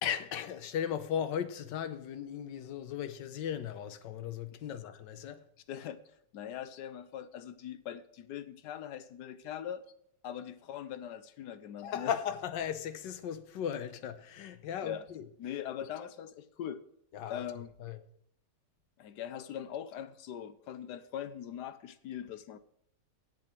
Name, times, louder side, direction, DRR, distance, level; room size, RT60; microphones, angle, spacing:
voice 1, 0.0-5.4 11.8-15.3 17.1-17.4 17.8-18.0, left 9 dB, 90° left, 1.5 m, -36 dB
voice 2, 5.7-6.0 6.3-9.8 10.2-12.1 14.8-15.1 15.4-16.8 17.3-17.7 19.0-22.6, left 10 dB, 70° left, 1.2 m, -41 dB
7.8 x 7.4 x 7.4 m
omnidirectional pair, 1.9 m